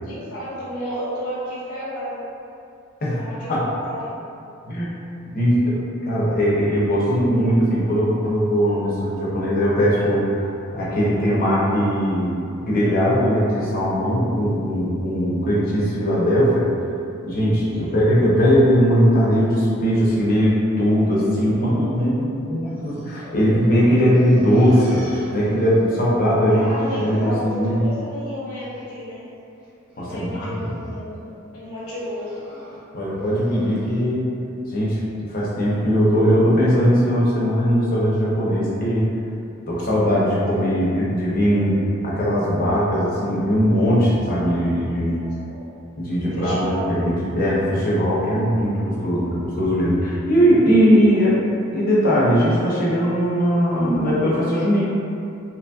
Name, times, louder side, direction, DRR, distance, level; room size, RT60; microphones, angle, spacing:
voice 1, 0.0-2.2 3.0-4.1 17.8-18.0 23.9-24.0 26.5-29.3 30.0-32.3 40.7-41.2 45.0-45.6 46.2-47.1, equal, 90° left, -8 dB, 0.9 m, -32 dB
voice 2, 5.3-16.7 17.2-25.0 25.3-26.7 27.0-27.8 30.0-30.8 32.9-34.3 34.7-35.0 35.3-39.1 39.7-41.8 42.0-45.2 46.0-51.4 51.7-54.8, equal, 40° left, -6 dB, 0.6 m, -19 dB
sound 1, 22.8-23.8 24.1-26.0 26.3-27.4 27.9-28.3 28.6-28.8 29.6-30.0 30.5-30.9 31.8-34.0, equal, 5° right, 0.9 m, -37 dB
2.9 x 2.6 x 2.3 m, 2.7 s
head